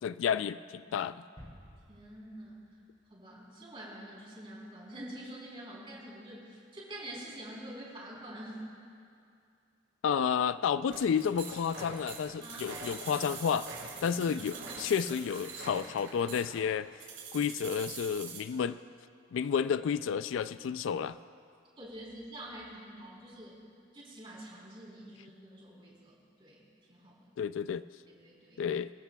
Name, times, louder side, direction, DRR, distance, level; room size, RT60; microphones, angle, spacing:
voice 1, 0.0-1.2 10.0-13.7 14.0-16.9 17.3-18.8 19.3-21.2 27.4-27.8 28.6-28.9, left 7 dB, 80° left, 15 dB, 0.3 m, -31 dB
sound 1, 1.4-3.3 3.7-3.8, equal, 25° left, 2.7 m, -55 dB
voice 2, 1.9-2.7 3.1-8.6 12.4-13.1 14.1-14.7 17.3-17.5 18.5-18.6 21.8-23.6 23.9-26.6 26.9-27.3 28.1-28.7, right 1 dB, 25° right, -5 dB, 3.5 m, -47 dB
sound 2, 10.9-18.4, right 5 dB, 85° right, 3.4 m, -44 dB
24.0 x 13.5 x 2.3 m, 2.4 s
head